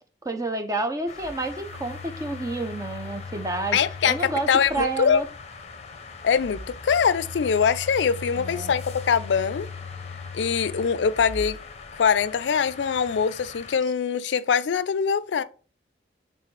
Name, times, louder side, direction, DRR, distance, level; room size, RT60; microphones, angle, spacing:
voice 1, 0.2-3.8 4.1-5.3 8.4-8.7, right 3 dB, 20° right, 0.5 m, -29 dB
sound 1, 1.1-13.8, left 4 dB, 35° left, 0.6 m, -43 dB
Telephone, 1.1-5.1 6.3-12.0, left 4 dB, 10° left, 1.1 m, -40 dB
voice 2, 3.7-5.2 6.2-9.7 10.3-11.6 12.0-15.4, left 6 dB, 85° left, 0.4 m, -23 dB
8.3 x 3.6 x 3.2 m
head